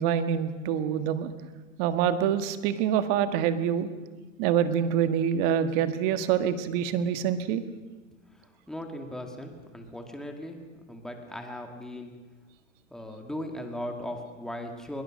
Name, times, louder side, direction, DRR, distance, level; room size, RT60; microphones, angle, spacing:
voice 1, 0.0-1.3 1.8-3.9 4.4-7.6, right 9 dB, 45° right, 10 dB, 1.6 m, -26 dB
voice 2, 8.3-12.1 12.9-15.0, left 1 dB, ahead, 3 dB, 2.0 m, -38 dB
21.5 x 19.5 x 6.4 m, 1.2 s
supercardioid pair, 145°, 39 cm